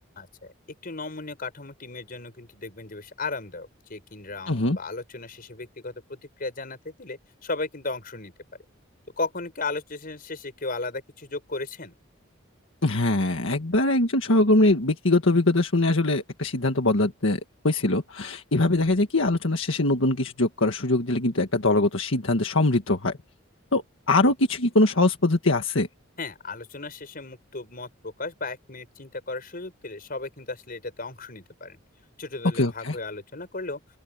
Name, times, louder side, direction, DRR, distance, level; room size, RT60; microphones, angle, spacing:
voice 1, 0.2-0.5 0.8-8.3 9.2-11.9 26.2-31.8 32.2-33.8, left 3 dB, 45° left, 5.1 m, -35 dB
voice 2, 4.5-4.8 12.8-23.2 23.7-25.9 32.5-33.0, left 2 dB, 75° left, 1.7 m, -22 dB
open air
head